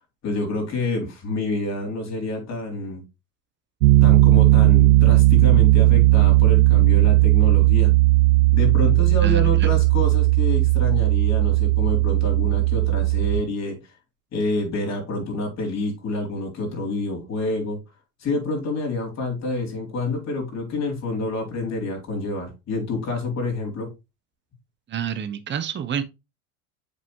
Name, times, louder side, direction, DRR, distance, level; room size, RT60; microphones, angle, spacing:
voice 1, 0.2-3.0 4.0-7.9 8.5-13.9 14.3-17.8 18.2-23.9, left 2 dB, 35° left, 3.6 m, -28 dB
Piano, 3.8-13.4, right 19 dB, 70° right, 0.7 m, -16 dB
voice 2, 9.2-9.7 24.9-26.0, right 8 dB, 25° right, 1.0 m, -28 dB
7.4 x 5.4 x 3.2 m
hypercardioid pair, 85°, 44 cm